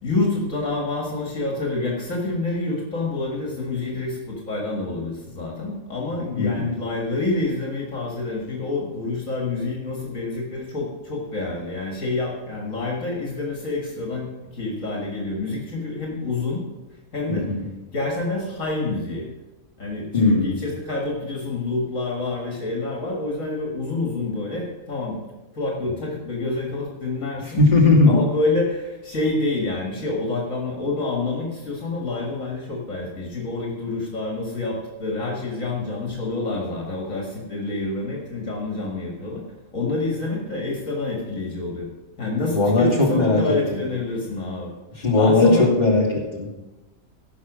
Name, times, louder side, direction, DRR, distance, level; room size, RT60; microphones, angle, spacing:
voice 1, 0.0-16.6 17.1-17.5 17.9-19.3 19.8-25.2 25.5-27.6 28.1-39.4 39.7-41.9 42.2-45.7, left 2 dB, 65° left, -1 dB, 2.3 m, -27 dB
voice 2, 6.4-6.7 17.3-17.6 20.1-20.6 27.5-28.2 42.5-43.8 45.0-46.5, left 2 dB, 30° left, -4 dB, 3.0 m, -18 dB
15.5 x 5.9 x 6.2 m, 1.1 s
omnidirectional pair, 1.5 m